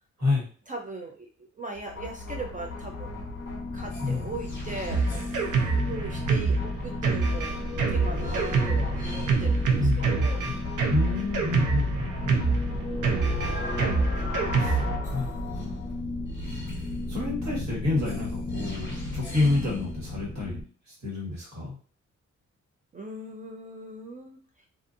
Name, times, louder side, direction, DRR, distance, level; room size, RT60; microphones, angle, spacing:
voice 1, 0.7-1.3 1.6-3.2 3.7-5.1 5.8-7.6 7.9-10.4 22.9-24.4, right 3 dB, 25° right, 2 dB, 0.4 m, -39 dB
sound 1, 1.8-20.6, left 2 dB, 40° left, 1.0 m, -33 dB
Drum kit, 4.9-15.0, right 4 dB, 85° right, 0.6 m, -26 dB
voice 2, 9.8-10.5 10.9-13.4 14.6-14.8 15.1-15.7 16.4-16.6 17.1-20.6 20.9-21.8, left 3 dB, 65° right, -5 dB, 1.5 m, -29 dB
2.5 x 2.5 x 2.6 m, 0.39 s
wide cardioid pair, 125°, 30 cm